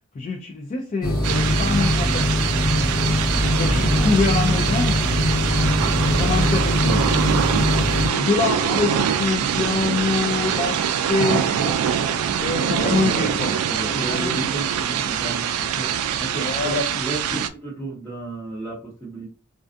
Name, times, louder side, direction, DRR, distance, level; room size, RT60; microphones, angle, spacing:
voice 1, 0.1-2.3 3.5-5.8 6.2-7.6 8.0-11.8 12.4-13.5 13.9-14.5 16.4-16.8 17.3-17.4, left 4 dB, 30° left, 2 dB, 0.3 m, -25 dB
sound 1, 1.0-8.1, left 1 dB, 60° left, 1.0 m, -21 dB
sound 2, 1.2-17.5, right 8 dB, 70° right, 0.3 m, -24 dB
sound 3, 1.3-6.5, right 1 dB, 15° right, 0.9 m, -33 dB
voice 2, 3.7-4.1 12.7-13.3 13.6-15.9 16.2-19.3, right 2 dB, 10° left, -6 dB, 0.7 m, -32 dB
2.4 x 2.3 x 2.5 m, 0.35 s
head